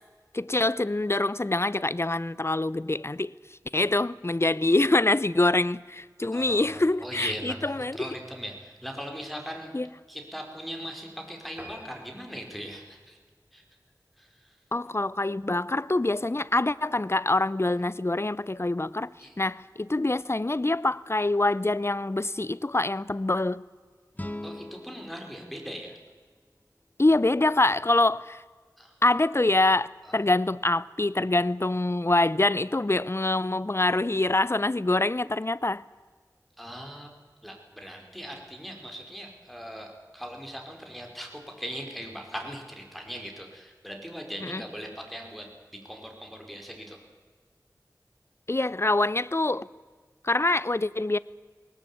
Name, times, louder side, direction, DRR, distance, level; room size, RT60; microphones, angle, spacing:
voice 1, 0.3-3.3 3.7-8.1 9.7-9.9 14.7-19.1 19.4-23.6 27.0-28.4 29.0-29.9 30.1-35.8 44.4-44.6 48.5-49.7 50.2-51.2, left 2 dB, 40° left, 0.6 m, -25 dB
voice 2, 6.3-9.7 10.1-13.2 13.5-13.6 14.2-14.5 19.2-19.3 24.4-26.0 28.8-28.9 30.0-30.1 36.6-37.1 37.4-45.5 45.8-47.0, equal, ahead, 4.8 m, -40 dB
sound 1, 11.6-14.3 14.8-15.0 15.4-15.5 15.8-15.9 16.2-16.3, equal, 20° right, 6.2 m, -49 dB
sound 2, 24.1-27.2, left 1 dB, 25° left, 1.0 m, -42 dB
19.5 x 19.0 x 8.6 m
wide cardioid pair, 45°, 7 cm